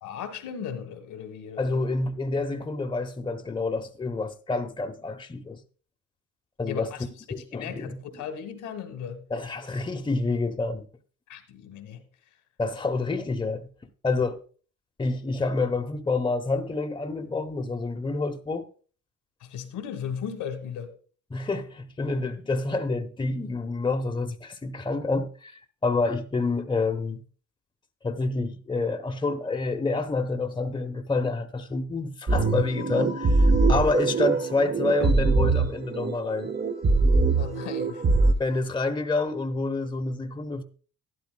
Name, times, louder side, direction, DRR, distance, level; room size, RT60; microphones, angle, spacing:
voice 1, 0.0-1.8 6.7-7.0 7.5-9.2 11.3-12.0 19.4-20.9 37.3-38.0, left 8 dB, 90° left, 1.5 m, -36 dB
voice 2, 1.6-5.6 6.6-6.9 7.3-8.0 9.3-10.9 12.6-13.7 14.0-14.4 15.0-18.7 21.3-27.2 28.0-36.5 38.4-40.6, left 3 dB, 15° left, 0.9 m, -28 dB
sound 1, 32.3-38.3, right 3 dB, 35° right, 1.0 m, -23 dB
12.0 x 11.5 x 2.2 m
cardioid pair, 90°, 30 cm